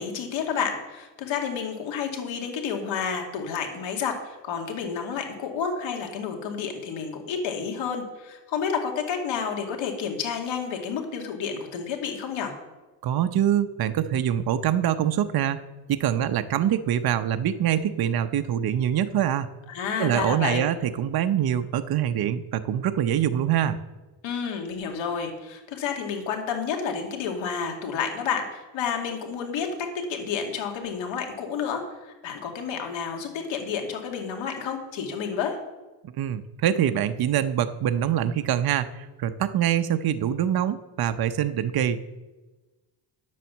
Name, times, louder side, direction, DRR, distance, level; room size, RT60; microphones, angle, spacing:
voice 1, 0.0-12.5 19.7-20.6 24.2-35.6, left 6 dB, 85° left, 2 dB, 2.2 m, -30 dB
voice 2, 13.0-15.6 15.9-19.5 20.0-23.8 36.2-42.1, right 10 dB, 55° right, 9 dB, 0.8 m, -24 dB
10.0 x 7.6 x 7.2 m, 1.2 s
cardioid pair, 105°, 44 cm